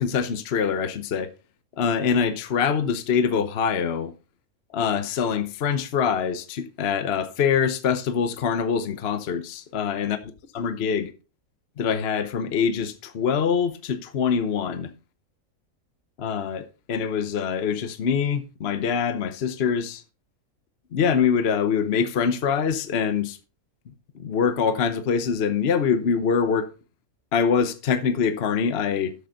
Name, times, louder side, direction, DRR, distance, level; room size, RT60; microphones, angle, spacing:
voice 1, 0.0-1.3 1.8-4.1 4.7-10.2 10.5-11.1 11.8-14.9 16.2-20.0 20.9-23.4 24.1-26.7 27.3-29.1, left 6 dB, 50° left, 1.0 m, -24 dB
12.0 x 7.0 x 3.9 m
omnidirectional pair, 1.5 m